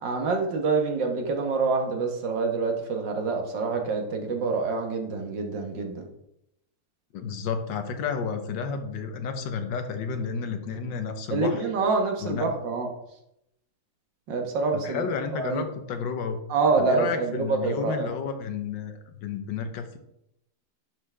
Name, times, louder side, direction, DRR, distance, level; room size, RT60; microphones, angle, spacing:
voice 1, 0.0-6.0 11.3-12.9 14.3-15.1 15.3-15.6 16.5-18.1, right 4 dB, 70° right, 3 dB, 1.9 m, -26 dB
voice 2, 7.1-11.6 12.2-12.5 14.7-16.4 16.8-20.0, left 6 dB, 75° left, 7 dB, 1.6 m, -31 dB
11.0 x 5.8 x 3.4 m, 0.81 s
omnidirectional pair, 2.1 m